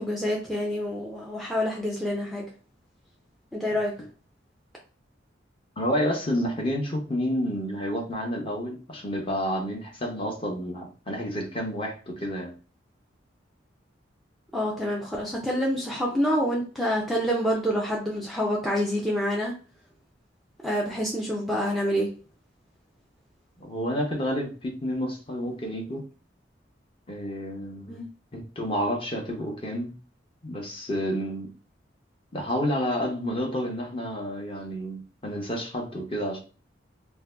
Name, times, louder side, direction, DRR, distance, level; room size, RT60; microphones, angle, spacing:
voice 1, 0.0-2.5 3.5-4.0 14.5-19.5 20.6-22.1 27.9-28.0, equal, ahead, -2 dB, 0.4 m, -27 dB
voice 2, 5.8-12.5 23.6-26.0 27.1-28.0 28.3-29.9 30.4-31.5 32.3-36.4, equal, 30° left, 0 dB, 0.8 m, -30 dB
2.6 x 2.2 x 3.3 m, 0.37 s
head